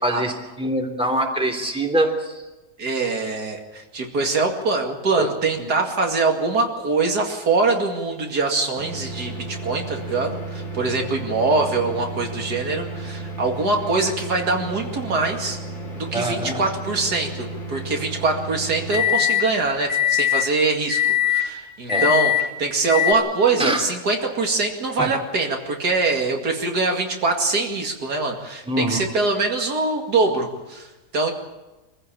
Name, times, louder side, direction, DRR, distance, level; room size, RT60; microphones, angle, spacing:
voice 1, 0.0-2.4 5.2-5.3 5.6-5.7 16.1-16.6 21.9-22.1 23.6-23.8 25.0-25.1 28.7-29.0, right 1 dB, 5° right, 2 dB, 3.1 m, -24 dB
voice 2, 2.8-15.6 15.9-31.3, right 3 dB, 75° right, 2 dB, 2.8 m, -23 dB
sound 1, 8.8-19.5 19.9-20.5 20.9-21.5 21.9-22.5 22.9-23.1, left 7 dB, 45° left, 4.0 m, -27 dB
24.0 x 15.5 x 8.6 m, 1.1 s
omnidirectional pair, 1.7 m